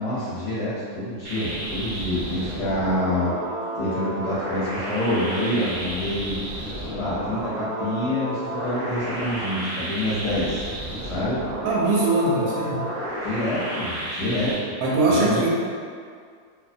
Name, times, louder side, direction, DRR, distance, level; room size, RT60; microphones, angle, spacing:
voice 1, 0.0-3.3 3.7-6.4 6.9-10.6 11.0-11.4 13.2-14.7 15.1-15.4, left 1 dB, 55° left, -11 dB, 0.9 m, -27 dB
sound 1, 1.2-14.6, right 1 dB, 45° right, 0.6 m, -31 dB
voice 2, 11.6-12.9 14.8-15.5, right 2 dB, 75° right, -4 dB, 1.0 m, -21 dB
2.7 x 2.1 x 2.5 m, 2.1 s
omnidirectional pair, 1.6 m